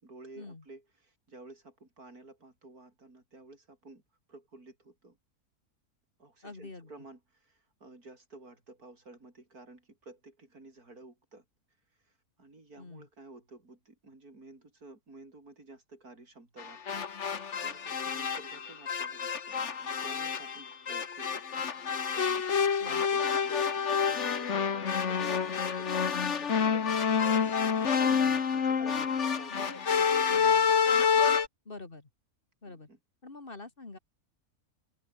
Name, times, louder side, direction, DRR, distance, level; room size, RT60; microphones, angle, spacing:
voice 1, 0.0-4.0 4.3-5.2 6.2-11.4 12.0-17.1 17.6-29.7 30.0-30.7 31.1-31.3 32.6-33.0, right 2 dB, 85° right, 5.8 m, -52 dB
voice 2, 6.4-6.9 12.8-13.1 22.8-23.0 28.0-28.4 28.8-29.1 29.5-29.8 30.3-30.6 31.7-32.1 32.6-32.9 33.2-34.0, left 3 dB, 35° left, 2.3 m, -46 dB
sound 1, 16.6-31.5, left 6 dB, 55° left, 1.6 m, -28 dB
open air
omnidirectional pair, 1.5 m